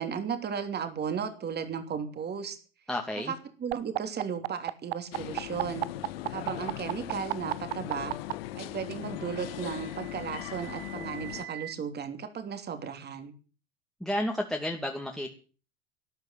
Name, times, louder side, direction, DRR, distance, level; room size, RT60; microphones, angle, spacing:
voice 1, 0.0-2.6 3.3-3.4 3.6-5.9 6.3-8.2 8.5-13.3, right 7 dB, 35° right, 8 dB, 3.2 m, -35 dB
voice 2, 2.9-3.3 14.0-15.3, left 1 dB, ahead, 1 dB, 2.3 m, -31 dB
sound 1, 3.7-8.3 9.5-11.7, right 17 dB, 70° right, 0.8 m, -34 dB
sound 2, 5.1-11.5, left 15 dB, 70° left, 1.1 m, -39 dB
13.0 x 10.5 x 7.6 m, 0.38 s
hypercardioid pair, 80°, 31 cm